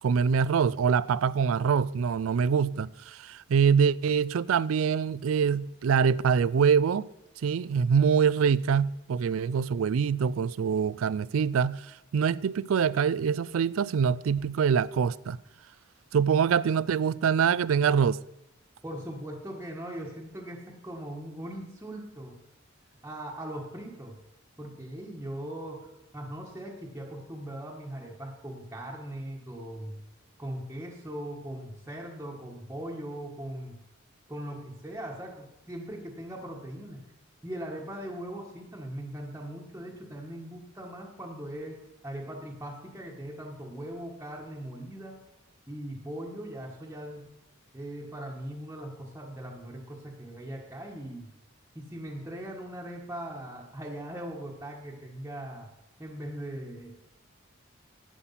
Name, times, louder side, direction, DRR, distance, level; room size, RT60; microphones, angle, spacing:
voice 1, 0.0-7.1 7.4-11.9 12.1-15.4 16.1-18.2, right 6 dB, 85° right, 0.4 m, -24 dB
voice 2, 18.8-22.4 23.0-24.2 24.6-30.0 30.4-33.8 34.3-37.0 37.4-45.2 45.7-47.3 47.7-51.3 51.7-55.7 56.0-56.9, right 1 dB, 10° right, 1.4 m, -40 dB
11.0 x 8.8 x 5.7 m
head